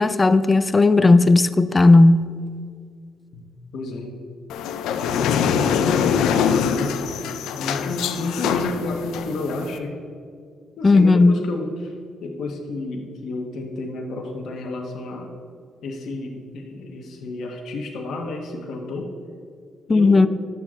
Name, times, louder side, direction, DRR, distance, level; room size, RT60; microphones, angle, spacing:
voice 1, 0.0-2.3 10.8-11.3 19.9-20.3, left 3 dB, 25° left, 12 dB, 0.4 m, -14 dB
voice 2, 3.7-4.2 5.0-7.0 7.5-10.0 10.8-11.9 12.2-15.3 15.8-19.1 19.9-20.3, left 2 dB, 70° left, 1 dB, 1.2 m, -30 dB
sound 1, 4.5-9.8, left 7 dB, 85° left, 0.5 m, -23 dB
11.0 x 8.0 x 3.7 m, 2.1 s
cardioid pair, 90°, 0 cm